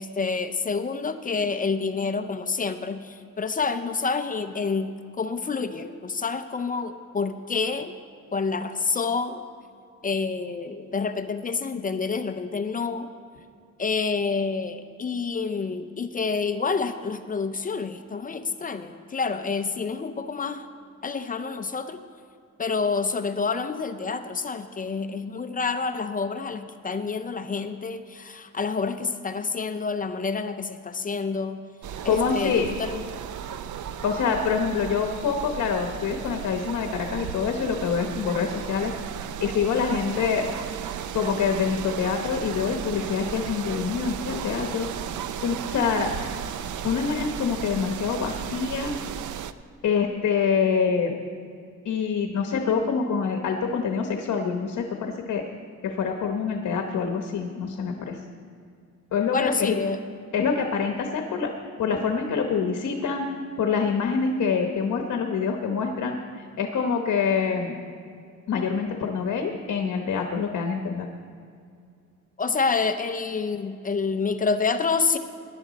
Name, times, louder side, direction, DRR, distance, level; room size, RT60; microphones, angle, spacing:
voice 1, 0.0-7.9 8.3-9.4 10.0-13.1 13.8-20.7 21.0-22.0 22.6-31.6 32.0-33.0 59.3-60.0 72.4-75.2, left 4 dB, 30° left, 9 dB, 0.5 m, -28 dB
sound 1, 31.8-49.5, right 9 dB, 85° right, 0.5 m, -35 dB
voice 2, 32.0-32.7 34.0-38.9 39.4-40.4 41.1-44.9 45.4-46.1 46.8-48.9 49.8-51.1 51.8-55.4 55.8-58.2 59.1-59.8 60.3-61.5 61.8-63.3 63.6-67.8 68.5-71.1, left 6 dB, 65° left, 4 dB, 1.0 m, -26 dB
17.5 x 11.0 x 4.1 m, 2.4 s
wide cardioid pair, 175°, 30 cm